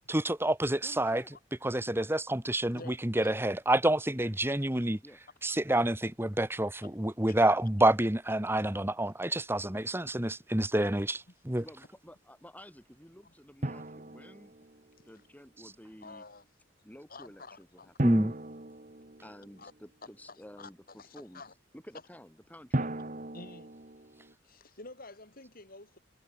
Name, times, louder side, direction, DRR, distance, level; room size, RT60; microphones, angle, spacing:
voice 1, 0.1-1.2 1.6-5.0 5.4-11.6 18.0-18.3, right 1 dB, 10° right, 1.7 m, -28 dB
voice 2, 0.8-1.3 4.1-4.3 5.0-5.2 11.6-14.6 15.0-16.2 16.8-18.3 19.2-20.8 21.1-21.4 21.7-22.9, equal, 10° left, 6.0 m, -52 dB
voice 3, 2.6-3.3 6.8-6.9 7.3-7.4 9.3-9.4 11.3-11.4 13.2-13.3 16.0-16.5 17.1-18.0 19.6-19.7 20.3-21.5 23.3-23.7 24.4-26.0, left 3 dB, 50° left, 4.7 m, -50 dB
Drum, 13.6-15.1 18.0-19.8 22.7-24.3, right 1 dB, 40° right, 1.6 m, -37 dB
head